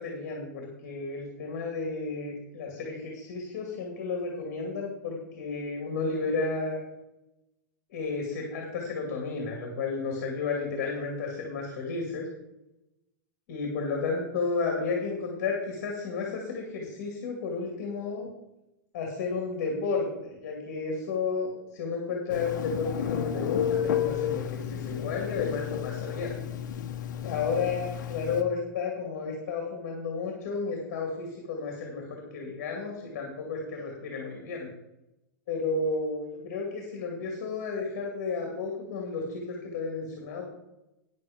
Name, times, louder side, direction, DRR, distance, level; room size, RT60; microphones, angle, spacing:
voice 1, 0.0-6.8 7.9-12.3 13.5-18.3 18.9-26.4 27.2-34.7 35.5-40.5, left 4 dB, 40° left, 1 dB, 2.5 m, -32 dB
Telephone, 22.3-28.4, left 9 dB, 70° left, 1.0 m, -32 dB
9.6 x 8.3 x 5.2 m, 0.91 s
supercardioid pair, 180°, 10 cm